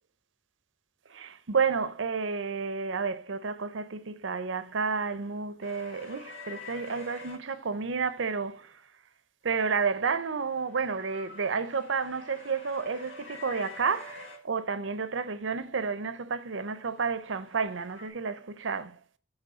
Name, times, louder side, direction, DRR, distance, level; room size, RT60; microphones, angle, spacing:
voice 1, 1.1-8.8 9.4-19.0, right 5 dB, 85° right, 0.7 m, -31 dB
sound 1, 5.6-7.4 9.8-14.4 16.8-18.1, left 3 dB, 90° left, 1.6 m, -47 dB
8.1 x 3.5 x 5.4 m
head